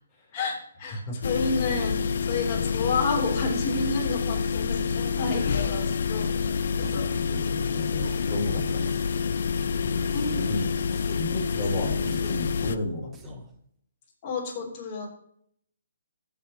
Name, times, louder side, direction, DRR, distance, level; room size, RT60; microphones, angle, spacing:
voice 1, 0.3-6.3 6.8-7.1 10.1-10.6 14.2-15.1, left 3 dB, 30° left, -2 dB, 3.5 m, -30 dB
sound 1, 1.2-12.8, left 6 dB, 65° left, 0.6 m, -27 dB
voice 2, 6.8-8.9 9.8-10.7 11.2-13.4, left 2 dB, 15° left, -6 dB, 4.1 m, -33 dB
sound 2, 6.8-7.2 8.0-8.3 8.9-9.4 10.1-10.5 10.9-11.3 12.0-12.5 13.1-13.5, right 4 dB, 15° right, 1.0 m, -48 dB
14.5 x 7.2 x 3.1 m, 0.66 s
hypercardioid pair, 155°, 0 cm